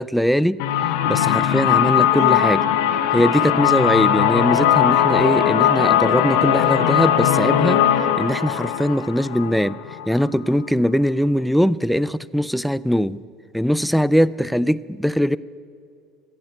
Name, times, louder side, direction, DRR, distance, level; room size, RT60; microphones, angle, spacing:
voice 1, 0.0-2.7 3.1-7.9 8.2-9.8 10.1-13.2 13.5-15.4, equal, ahead, 18 dB, 0.3 m, -21 dB
sound 1, 0.6-10.3, left 10 dB, 65° left, 0.8 m, -19 dB
15.5 x 7.9 x 8.0 m, 2.2 s
figure-of-eight pair, 60°, 0 cm